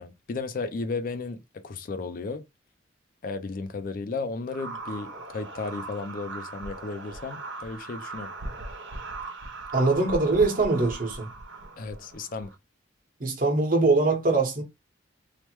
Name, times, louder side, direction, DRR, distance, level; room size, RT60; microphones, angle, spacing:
voice 1, 0.0-2.4 3.2-8.3 11.8-12.5, left 3 dB, 45° left, 0.4 m, -34 dB
sound 1, 4.5-12.6, right 2 dB, 70° right, 0.6 m, -39 dB
voice 2, 9.7-11.3 13.2-14.6, right 3 dB, 45° right, 1.0 m, -22 dB
3.2 x 2.1 x 3.0 m
head